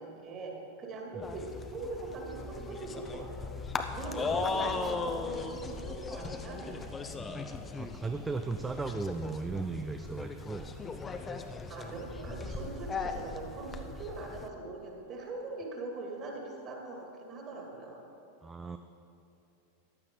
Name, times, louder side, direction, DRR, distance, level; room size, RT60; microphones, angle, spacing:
voice 1, 0.0-3.5 3.9-6.8 11.7-18.0, right 3 dB, 30° right, 0 dB, 2.6 m, -41 dB
sound 1, 1.2-14.5, left 4 dB, 20° left, 0.7 m, -38 dB
voice 2, 7.2-7.5 7.8-10.7 18.4-18.8, right 3 dB, 15° right, 7 dB, 0.4 m, -36 dB
14.5 x 10.5 x 3.9 m, 2.7 s
figure-of-eight pair, 90°, 0 cm